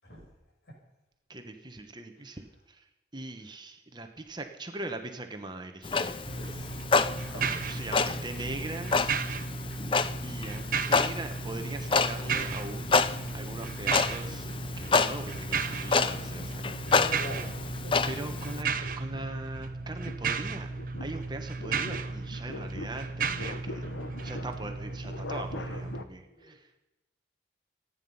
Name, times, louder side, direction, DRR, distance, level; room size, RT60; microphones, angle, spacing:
voice 1, 1.3-2.8 3.1-6.2 7.3-8.9 10.2-13.0 13.3-16.7 18.1-20.7 21.0-23.9 24.2-26.7, right 2 dB, 25° right, 5 dB, 1.1 m, -40 dB
Clock, 5.8-18.6, left 4 dB, 30° left, 0.5 m, -29 dB
voice 2, 6.2-7.1 7.3-7.4 16.8-17.9 23.8-24.3 26.3-26.5, equal, 70° left, -1 dB, 6.4 m, -44 dB
sound 1, 6.2-26.0, right 5 dB, 50° right, 0.8 m, -35 dB
sound 2, 12.0-13.4 13.9-26.0, left 2 dB, 90° left, 1.2 m, -45 dB
26.0 x 9.6 x 5.5 m, 0.98 s
head